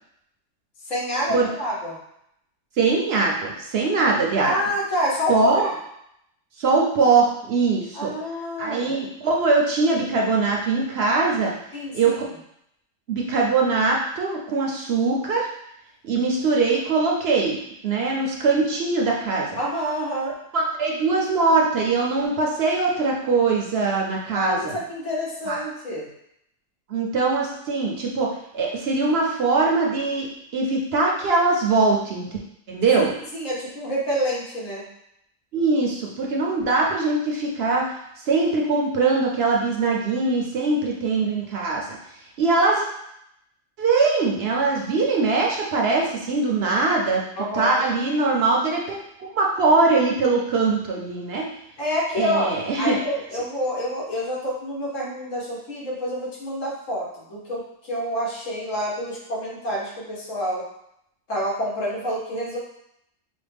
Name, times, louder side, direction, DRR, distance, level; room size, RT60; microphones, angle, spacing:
voice 1, 0.9-1.9 4.4-5.7 7.9-9.0 11.7-12.2 19.6-20.3 24.3-26.1 33.0-33.1 33.3-34.8 47.4-47.8 51.8-60.6 61.3-62.6, equal, 75° left, -4 dB, 1.5 m, -28 dB
voice 2, 2.8-4.5 5.3-5.6 6.6-8.1 8.6-11.5 11.9-12.2 13.1-15.5 16.0-19.6 20.5-24.8 25.5-25.6 26.9-30.3 30.5-32.3 32.7-33.1 35.5-37.8 38.3-41.9 42.4-42.9 43.8-47.2 47.5-51.5 52.1-53.0, right 3 dB, 60° right, -1 dB, 0.8 m, -22 dB
5.0 x 2.2 x 3.4 m, 0.76 s
omnidirectional pair, 1.3 m